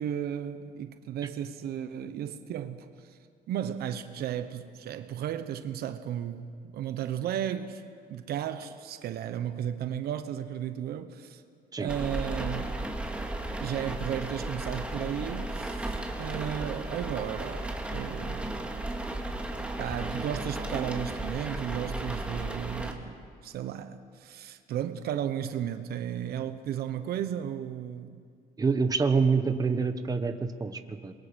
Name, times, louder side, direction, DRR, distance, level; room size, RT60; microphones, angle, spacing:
voice 1, 0.0-3.1 3.5-7.8 8.1-11.4 11.8-12.8 13.6-18.5 19.8-28.2, right 10 dB, 70° right, 1.1 m, -34 dB
sound 1, 11.9-22.9, right 2 dB, 5° right, 2.2 m, -34 dB
voice 2, 28.6-31.1, right 5 dB, 20° right, 1.3 m, -26 dB
27.5 x 22.5 x 5.3 m
cardioid pair, 110°, 17 cm